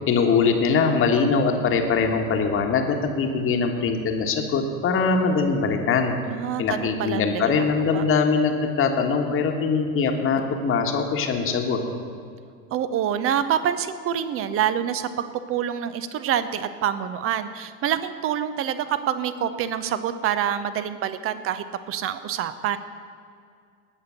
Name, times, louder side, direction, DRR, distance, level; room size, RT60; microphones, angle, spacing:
voice 1, 0.1-6.1 6.6-11.8, left 5 dB, 30° left, 4 dB, 1.4 m, -22 dB
voice 2, 6.3-7.7 7.9-8.0 12.7-15.1 15.5-22.8, right 9 dB, 30° right, 12 dB, 0.7 m, -26 dB
18.5 x 6.6 x 7.0 m, 2.3 s
figure-of-eight pair, 75°, 44 cm